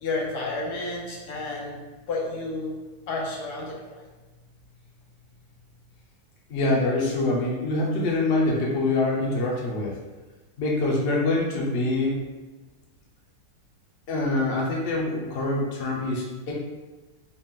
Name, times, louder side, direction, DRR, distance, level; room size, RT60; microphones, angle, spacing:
voice 1, 0.0-1.8 2.1-2.7 3.1-3.7, left 3 dB, 85° left, -3 dB, 1.4 m, -30 dB
voice 2, 6.5-10.0 10.6-12.2 14.1-16.5, left 2 dB, 50° left, -3 dB, 0.9 m, -25 dB
4.1 x 2.5 x 3.7 m, 1.2 s
omnidirectional pair, 1.6 m